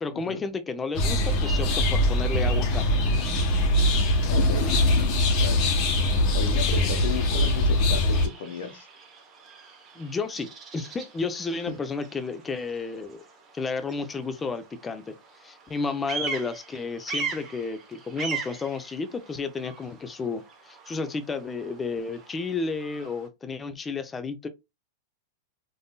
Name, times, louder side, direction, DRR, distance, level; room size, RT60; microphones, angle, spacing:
voice 1, 0.0-2.8 10.0-13.2 13.5-24.5, left 4 dB, 15° left, 0.5 m, -32 dB
sound 1, 0.9-8.3, left 1 dB, 40° left, 1.0 m, -22 dB
voice 2, 4.2-4.7 5.3-5.7 6.3-8.9 11.7-11.8, left 5 dB, 70° left, 0.9 m, -35 dB
Bird vocalization bird call bird song, 4.5-23.3, right 5 dB, 25° right, 0.9 m, -41 dB
3.5 x 2.6 x 2.2 m
hypercardioid pair, 125°, 0 cm